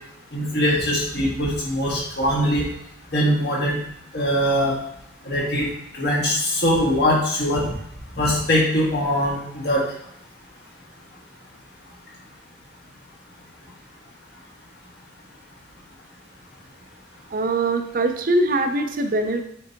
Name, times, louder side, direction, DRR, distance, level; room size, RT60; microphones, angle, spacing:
voice 1, 0.3-2.7 3.1-3.8 4.1-4.8 5.3-5.7 5.9-7.6 8.1-9.8, equal, 55° left, -4 dB, 1.9 m, -21 dB
voice 2, 17.3-19.4, right 2 dB, 45° right, 6 dB, 0.5 m, -22 dB
7.5 x 4.6 x 2.9 m, 0.71 s
head